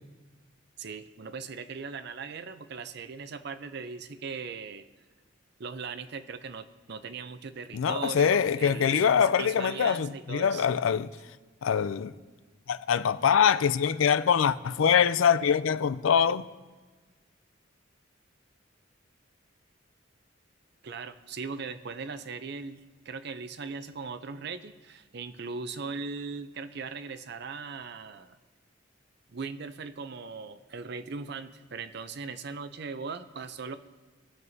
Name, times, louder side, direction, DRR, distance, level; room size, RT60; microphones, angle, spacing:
voice 1, 0.8-4.8 5.6-10.7 20.8-28.4 29.3-33.8, right 5 dB, 55° right, 0.6 m, -39 dB
voice 2, 7.7-11.1 11.6-12.1 12.7-16.5, left 7 dB, 90° left, 0.4 m, -24 dB
22.0 x 7.5 x 2.7 m
head